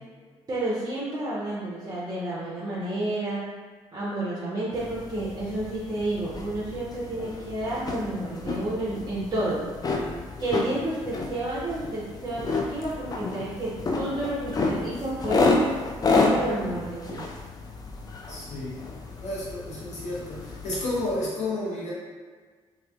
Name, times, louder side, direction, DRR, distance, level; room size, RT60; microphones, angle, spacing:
voice 1, 0.5-3.4 3.9-9.7 10.4-15.5 16.1-17.3, right 1 dB, 25° right, -8 dB, 0.6 m, -30 dB
sound 1, 4.7-21.2, left 3 dB, 25° left, 0.3 m, -30 dB
voice 2, 18.3-18.8 19.2-21.9, left 1 dB, 45° left, -7 dB, 0.9 m, -31 dB
2.4 x 2.2 x 2.3 m, 1.5 s
figure-of-eight pair, 40°, 16 cm